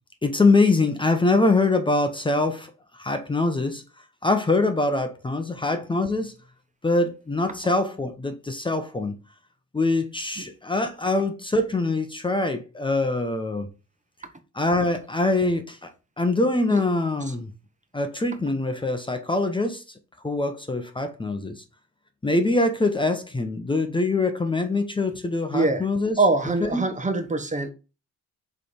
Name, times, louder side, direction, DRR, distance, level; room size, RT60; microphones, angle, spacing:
voice 1, 0.2-3.8 4.2-6.3 6.8-9.1 9.7-13.7 14.5-15.9 16.2-17.5 17.9-19.8 20.2-21.6 22.2-26.2 26.6-26.9, left 2 dB, 15° left, 1.0 m, -24 dB
voice 2, 25.5-25.9 26.2-27.7, right 3 dB, 25° right, 1.2 m, -23 dB
6.7 x 3.4 x 5.0 m
cardioid pair, 90°, 30 cm